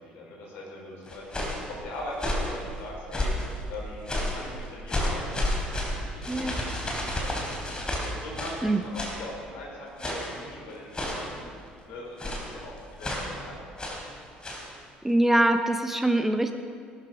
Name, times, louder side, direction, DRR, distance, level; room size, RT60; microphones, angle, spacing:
voice 1, 0.0-3.3 3.7-5.4 5.7-7.8 8.1-11.5 11.8-14.0, left 1 dB, 60° left, -3 dB, 4.7 m, -41 dB
sound 1, 1.1-1.7 2.1-2.6 3.1-3.5 4.1-4.4 4.9-8.6 8.9-9.2 10.0-10.4 10.9-11.3 12.2-12.5 13.0-13.3 13.8-14.1 14.4-14.7, left 1 dB, 20° left, 3.5 m, -30 dB
voice 2, 15.0-16.5, right 1 dB, 5° right, 7 dB, 0.9 m, -23 dB
18.0 x 12.5 x 5.0 m, 2.2 s
figure-of-eight pair, 55°, 4 cm